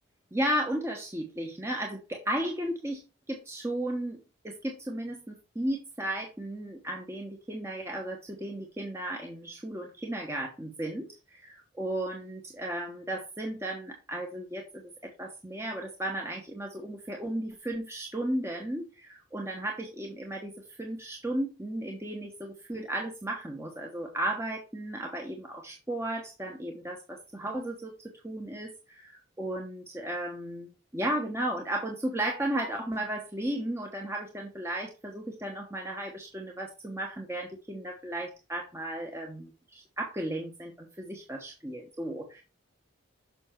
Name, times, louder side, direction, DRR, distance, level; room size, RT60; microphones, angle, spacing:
voice 1, 0.3-3.0 3.3-4.2 4.4-20.5 20.8-27.9 28.2-42.4, right 1 dB, 15° right, 1 dB, 1.1 m, -34 dB
7.0 x 5.9 x 4.5 m, 0.31 s
head